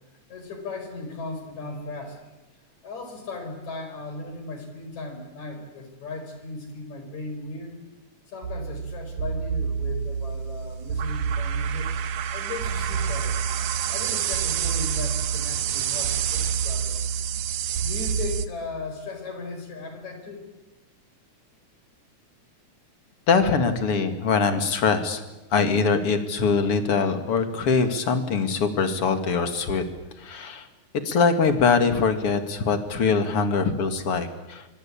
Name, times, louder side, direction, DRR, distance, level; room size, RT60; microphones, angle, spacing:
voice 1, 0.3-2.2 2.8-7.8 8.3-11.9 12.3-13.4 13.9-17.0 17.8-20.5, left 3 dB, 65° left, 6 dB, 6.1 m, -37 dB
sound 1, 8.4-18.5, right 7 dB, 70° right, 2.3 m, -27 dB
voice 2, 23.3-25.2 25.5-29.8 30.2-30.7 31.0-34.7, left 5 dB, 50° left, 8 dB, 3.0 m, -23 dB
25.5 x 24.0 x 8.7 m, 1.0 s
omnidirectional pair, 3.5 m